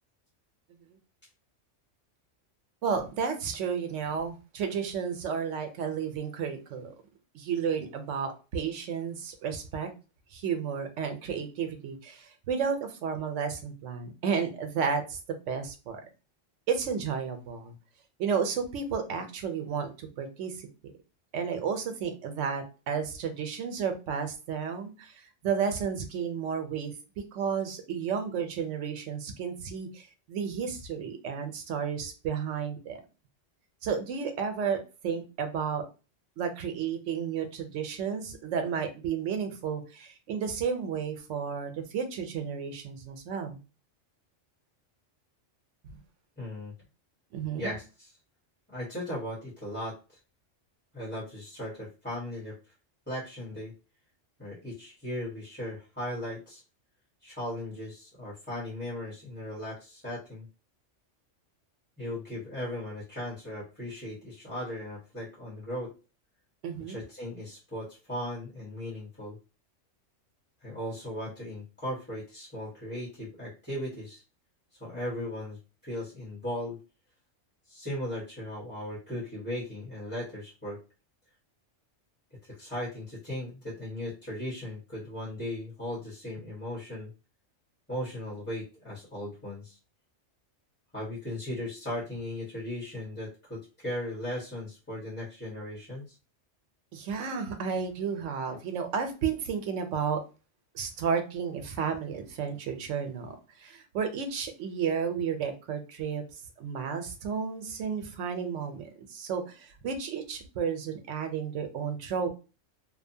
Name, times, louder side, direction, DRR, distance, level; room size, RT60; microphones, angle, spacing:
voice 1, 2.8-6.9 7.3-9.9 10.3-15.2 15.5-16.0 16.7-17.7 18.2-20.7 21.3-26.9 27.3-33.0 33.8-34.8 35.0-35.9 36.4-43.6 45.8-46.0 47.3-47.7 66.6-67.0 96.9-100.2 100.7-106.2 106.6-112.3, right 6 dB, 85° right, 6 dB, 0.9 m, -32 dB
voice 2, 46.4-46.7 47.6-48.1 48.7-50.2 50.9-52.6 53.1-53.7 54.4-56.6 57.2-60.4 62.0-65.9 66.9-69.3 70.6-74.2 74.8-75.6 75.8-76.8 77.7-80.8 82.4-87.1 87.9-89.8 90.9-96.1, left 1 dB, 10° left, -8 dB, 1.0 m, -37 dB
2.7 x 2.1 x 2.6 m, 0.31 s
omnidirectional pair, 1.3 m